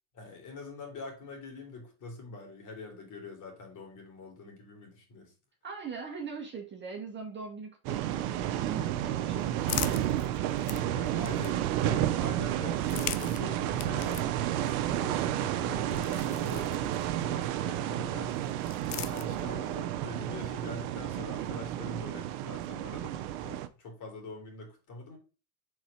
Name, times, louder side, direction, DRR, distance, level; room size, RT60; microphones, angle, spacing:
voice 1, 0.1-5.3 10.7-18.4 18.9-25.2, left 3 dB, 40° left, 3.1 m, -44 dB
voice 2, 5.6-9.7, right 5 dB, 25° right, 1.6 m, -41 dB
sound 1, 7.8-23.7, right 12 dB, 70° right, 0.8 m, -31 dB
sound 2, 8.8-11.9 12.7-17.3 18.3-19.8, left 15 dB, 80° left, 0.7 m, -42 dB
4.8 x 4.1 x 5.6 m
supercardioid pair, 115°, 45 cm